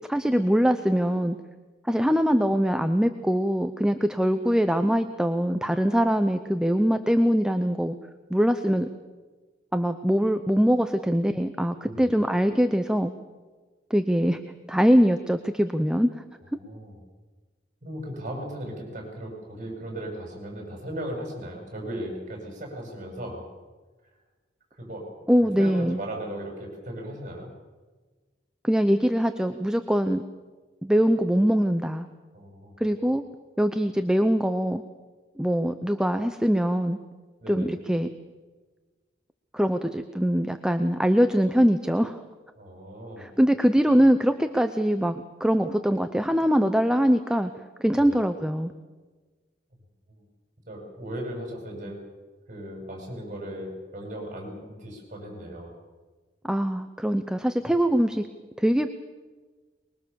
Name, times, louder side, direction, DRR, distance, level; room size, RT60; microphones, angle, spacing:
voice 1, 0.1-1.4 1.8-8.0 8.3-8.9 9.7-13.1 13.9-14.4 14.7-16.1 25.3-26.0 28.6-30.2 30.8-32.1 32.8-33.2 33.6-34.8 35.4-37.0 37.5-38.1 39.5-42.2 43.2-47.5 47.8-48.7 56.5-58.2 58.6-58.9, equal, 5° right, 8 dB, 0.8 m, -23 dB
voice 2, 16.6-17.0 17.8-23.4 24.8-25.1 25.4-27.5 32.3-32.7 37.4-37.7 42.6-43.3 47.8-48.2 50.1-50.2 50.7-52.0 52.5-55.7 57.6-57.7, right 1 dB, 45° right, 1 dB, 7.6 m, -37 dB
24.0 x 22.0 x 7.0 m, 1.3 s
head